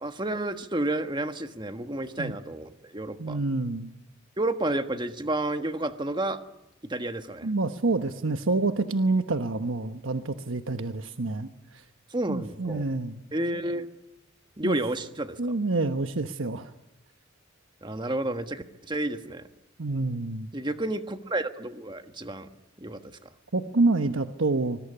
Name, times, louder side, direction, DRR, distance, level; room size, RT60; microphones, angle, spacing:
voice 1, 0.0-3.4 4.4-6.4 6.9-7.5 12.1-12.8 13.3-13.9 14.6-15.4 17.8-19.4 20.5-22.5 22.8-23.2, right 1 dB, 20° right, 8 dB, 1.5 m, -30 dB
voice 2, 3.2-3.9 7.4-11.5 11.7-11.8 12.3-13.2 14.6-14.8 15.4-16.7 19.8-20.5 23.5-24.8, right 3 dB, 75° right, 8 dB, 1.1 m, -27 dB
25.0 x 21.5 x 10.0 m, 0.94 s
head